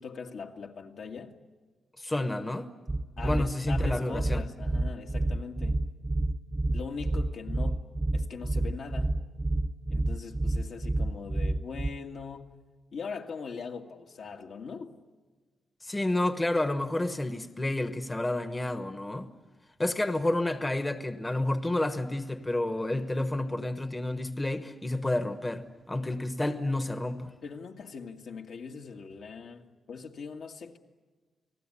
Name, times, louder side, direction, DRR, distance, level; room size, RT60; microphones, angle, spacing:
voice 1, 0.0-1.4 3.2-5.8 6.7-7.9 8.1-9.2 9.9-12.5 12.9-14.9 27.4-30.8, left 5 dB, 65° left, 2.0 m, -41 dB
voice 2, 2.0-2.7 3.2-4.4 15.8-19.3 19.8-27.3, left 1 dB, 15° left, 1.1 m, -30 dB
sound 1, 2.9-11.9, right 2 dB, 15° right, 0.9 m, -29 dB
29.5 x 19.5 x 9.9 m
wide cardioid pair, 130°, 0 cm